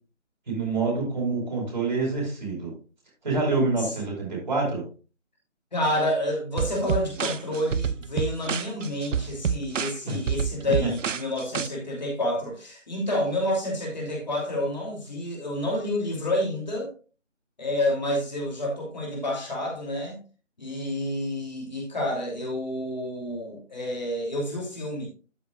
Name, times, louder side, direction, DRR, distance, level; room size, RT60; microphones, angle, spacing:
voice 1, 0.5-2.7 3.2-4.8 10.1-10.2, right 3 dB, 35° right, -2 dB, 4.7 m, -26 dB
voice 2, 5.7-16.9 17.6-20.2 20.6-25.1, left 1 dB, 35° left, -1 dB, 2.8 m, -29 dB
sound 1, 6.6-11.7, right 7 dB, 85° right, 0.6 m, -28 dB
12.5 x 6.0 x 2.4 m, 0.34 s
figure-of-eight pair, 175°, 37 cm